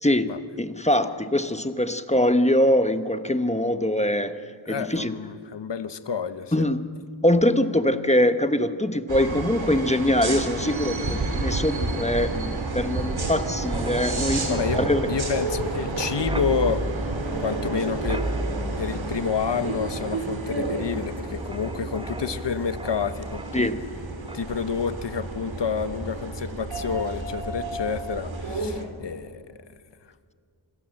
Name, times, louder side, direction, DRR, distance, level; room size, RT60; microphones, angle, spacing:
voice 1, 0.0-4.4 4.7-5.2 6.5-6.9 7.2-15.1 23.5-23.8, left 1 dB, 15° left, 9 dB, 1.1 m, -23 dB
voice 2, 4.7-6.7 14.5-16.9 17.4-18.3 18.8-23.7 24.3-29.6, left 6 dB, 60° left, 12 dB, 1.2 m, -29 dB
sound 1, 9.1-28.9, right 2 dB, 65° right, 3.7 m, -30 dB
Wind, 11.7-24.0 24.3-24.5, right 1 dB, 10° right, 0.9 m, -36 dB
26.5 x 19.0 x 7.8 m, 2.2 s
wide cardioid pair, 75°, 49 cm